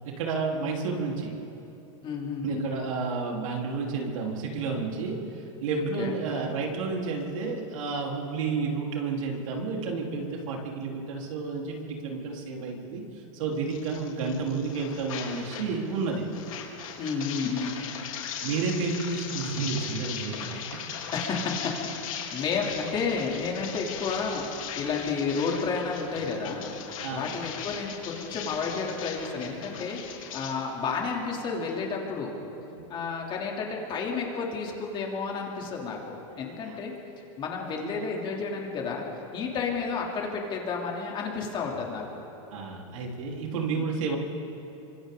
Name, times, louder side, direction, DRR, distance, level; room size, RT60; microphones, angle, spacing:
voice 1, 0.0-1.3 2.4-16.2 18.4-20.3 27.0-27.3 32.7-32.9 36.6-36.8 42.5-44.2, right 4 dB, 80° right, -1 dB, 4.1 m, -31 dB
voice 2, 2.0-2.7 5.8-6.2 17.0-17.8 21.1-21.7 22.0-26.7 27.1-32.3 32.9-36.9 37.4-39.0 39.3-42.2 43.5-43.9, left 5 dB, 30° left, -1 dB, 3.2 m, -31 dB
sound 1, 13.7-15.7 16.0-30.5, left 8 dB, 90° left, 3.7 m, -38 dB
26.0 x 25.0 x 4.0 m, 3.0 s
supercardioid pair, 150°, 17 cm